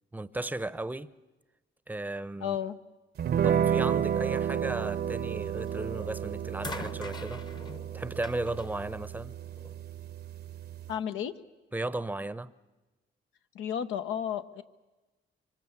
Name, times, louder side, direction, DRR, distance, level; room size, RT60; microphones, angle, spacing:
voice 1, 0.1-1.1 1.9-2.6 3.4-7.5 7.9-9.4 11.7-12.5, right 2 dB, 10° right, 0.7 m, -35 dB
voice 2, 2.4-2.8 10.9-11.3 13.5-14.6, left 9 dB, 85° left, 1.1 m, -32 dB
sound 1, 3.2-10.9, right 9 dB, 55° right, 0.8 m, -31 dB
sound 2, 5.7-6.0 6.6-9.9 10.9-11.0, left 2 dB, 20° left, 0.9 m, -44 dB
25.0 x 24.0 x 7.3 m
cardioid pair, 90°, 20 cm